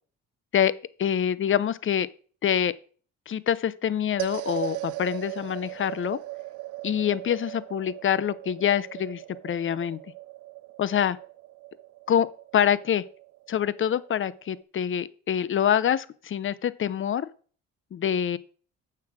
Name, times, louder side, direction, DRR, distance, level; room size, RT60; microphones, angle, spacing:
voice 1, 1.0-2.1 2.4-2.7 3.3-6.2 6.8-10.0 10.8-11.2 12.1-12.3 12.5-13.0 13.5-17.3 17.9-18.4, left 9 dB, 40° left, 0.6 m, -25 dB
sound 1, 4.2-14.6, right 19 dB, 85° right, 0.5 m, -39 dB
7.1 x 6.8 x 6.2 m
cardioid pair, 90°, 30 cm